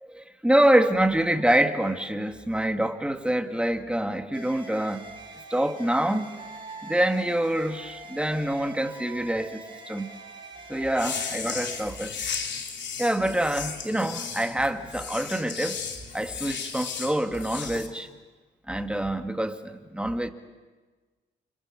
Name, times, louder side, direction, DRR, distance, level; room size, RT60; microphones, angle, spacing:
voice 1, 0.1-5.0 5.5-6.4 6.8-9.6 9.9-10.1 10.7-12.2 13.0-15.8 16.1-18.1 18.7-20.3, right 1 dB, 5° right, 7 dB, 2.0 m, -26 dB
sound 1, 4.3-11.9, right 3 dB, 25° right, 6.1 m, -43 dB
sound 2, 10.9-17.9, left 6 dB, 65° left, 3.2 m, -35 dB
29.5 x 26.0 x 6.5 m, 1.3 s
cardioid pair, 90°, 20 cm